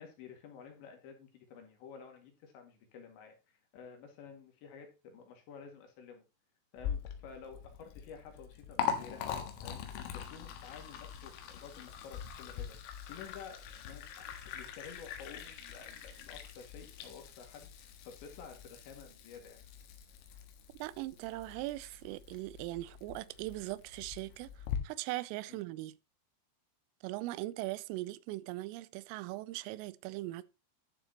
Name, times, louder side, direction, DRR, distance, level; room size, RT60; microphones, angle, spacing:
voice 1, 0.0-6.2 6.7-9.3 9.6-9.8 10.1-19.7 25.5-25.6, left 6 dB, 65° left, 4.2 m, -51 dB
Liquid, 6.8-24.8, left 8 dB, 80° left, 4.1 m, -43 dB
voice 2, 20.8-26.0 27.0-30.5, right 18 dB, 90° right, 3.2 m, -40 dB
12.5 x 7.2 x 2.9 m
omnidirectional pair, 5.8 m